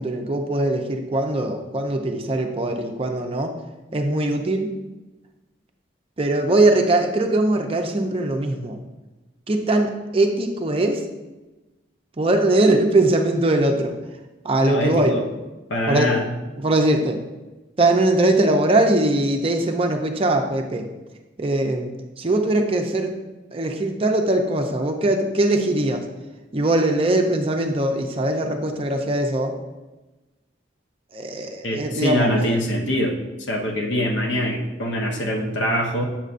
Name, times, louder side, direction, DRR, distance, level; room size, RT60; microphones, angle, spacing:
voice 1, 0.0-3.5 3.9-4.7 6.2-8.8 9.5-11.0 12.2-13.9 14.4-15.2 15.9-16.2 16.6-17.2 17.8-20.9 21.4-21.9 22.2-23.1 23.5-26.0 26.5-29.5 31.1-32.3, right 2 dB, 30° right, 3 dB, 0.5 m, -21 dB
voice 2, 14.6-15.2 15.7-16.3 31.6-33.1 33.5-36.0, equal, 70° left, 2 dB, 0.9 m, -23 dB
7.3 x 6.6 x 2.5 m, 1.1 s
head